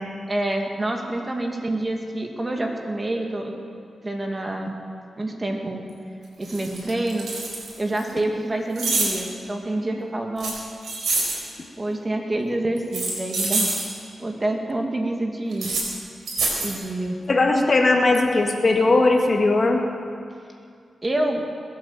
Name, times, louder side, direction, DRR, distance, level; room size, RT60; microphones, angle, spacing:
voice 1, 0.3-3.5 4.0-4.7 5.2-5.8 6.4-7.3 7.8-10.6 11.8-13.8 14.2-15.7 16.6-17.2 21.0-21.5, right 1 dB, 30° right, 2 dB, 2.2 m, -27 dB
sound 1, 5.9-6.0 6.4-8.0 8.7-9.2 10.4-11.4 12.8-13.8 15.5-15.8 16.3-16.7, right 3 dB, 80° right, 4.3 m, -26 dB
voice 2, 17.3-19.8, left 2 dB, 45° left, 2 dB, 1.9 m, -18 dB
21.0 x 8.7 x 7.5 m, 2.3 s
cardioid pair, 65°, 0 cm